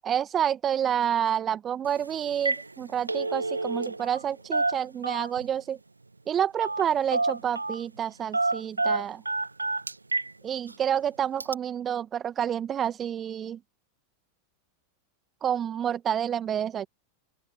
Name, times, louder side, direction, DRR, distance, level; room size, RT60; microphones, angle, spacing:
voice 1, 0.1-5.8 6.3-9.2 10.4-13.6 15.4-16.9, right 9 dB, 25° right, 1.8 m, -28 dB
Telephone, 1.8-2.0 2.3-2.7 2.9-4.2 4.5-5.5 6.6-6.9 7.1-7.8 8.3-10.3 10.7-10.8 11.4-11.5, right 3 dB, 85° right, 0.7 m, -28 dB
open air
figure-of-eight pair, 90°, 0 cm